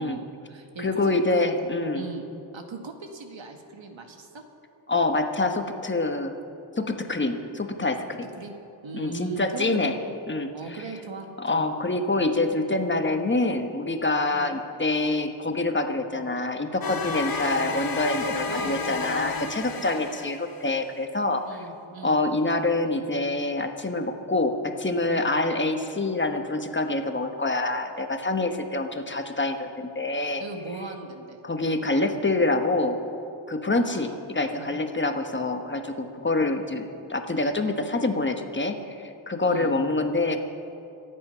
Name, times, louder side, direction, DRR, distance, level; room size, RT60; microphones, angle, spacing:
voice 1, 0.0-1.5 1.9-2.2 2.5-4.4 8.4-8.5 8.8-9.9 10.5-11.7 14.3-14.5 18.5-19.1 19.8-20.1 21.5-22.2 25.1-25.4 30.4-31.4 33.8-34.2 34.5-34.9 39.4-39.7, right 3 dB, 65° right, 4 dB, 1.9 m, -39 dB
voice 2, 0.8-2.0 4.9-6.4 6.8-8.2 8.9-9.9 10.3-10.8 11.4-21.4 22.0-30.4 31.4-33.0 33.5-40.4, left 2 dB, 20° left, 6 dB, 1.2 m, -26 dB
sound 1, 16.8-20.7, left 4 dB, 45° left, 1.2 m, -31 dB
25.5 x 8.7 x 5.7 m, 2.7 s
wide cardioid pair, 90°, 49 cm